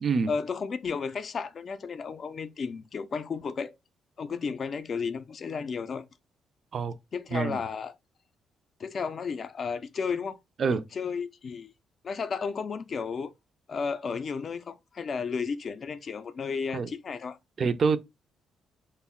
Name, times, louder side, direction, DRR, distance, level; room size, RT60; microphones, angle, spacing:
voice 1, 0.3-3.7 4.2-6.1 7.1-8.0 8.8-10.4 10.7-11.7 12.0-13.3 13.7-17.4, left 5 dB, 50° left, 0.3 m, -33 dB
voice 2, 17.6-18.0, right 5 dB, 50° right, 0.3 m, -26 dB
2.1 x 2.0 x 3.5 m
cardioid pair, 90°, 0 cm